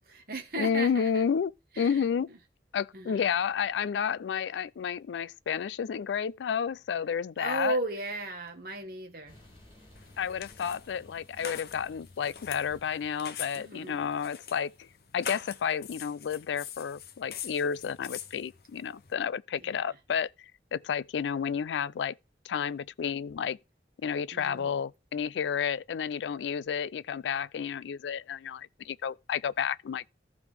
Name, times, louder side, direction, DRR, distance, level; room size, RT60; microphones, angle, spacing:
voice 1, 0.1-1.2 1.7-2.4 2.9-3.2 7.4-9.4 13.5-14.1 19.5-20.0 24.3-24.8, right 2 dB, 55° right, 1.6 m, -36 dB
voice 2, 0.6-1.5 1.8-2.3 2.7-7.8 10.2-14.9 15.1-20.3 20.7-22.2 22.4-23.6 24.0-30.0, left 7 dB, 85° left, 0.3 m, -31 dB
sound 1, 9.3-14.9, left 1 dB, 30° left, 6.2 m, -59 dB
sound 2, 10.0-19.1, left 8 dB, 55° left, 0.7 m, -44 dB
14.0 x 4.8 x 3.4 m
head